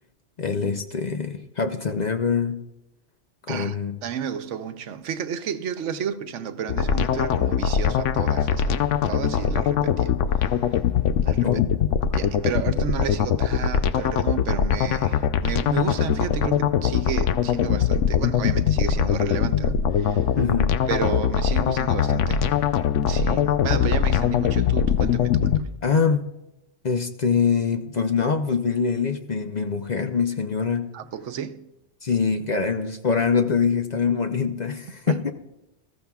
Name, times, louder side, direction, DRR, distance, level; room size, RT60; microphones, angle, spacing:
voice 1, 0.4-2.6 3.5-4.0 11.4-11.7 20.4-20.7 25.8-26.2 26.8-30.9 32.0-35.3, left 5 dB, 45° left, 0.6 m, -24 dB
voice 2, 4.0-8.8 9.1-10.1 11.2-11.5 12.1-20.3 20.9-22.5 23.1-25.7 30.9-31.7 35.1-35.3, right 8 dB, 85° right, 1.0 m, -32 dB
sound 1, 6.7-25.6, left 8 dB, 85° left, 0.9 m, -22 dB
20.0 x 14.0 x 2.3 m
omnidirectional pair, 1.2 m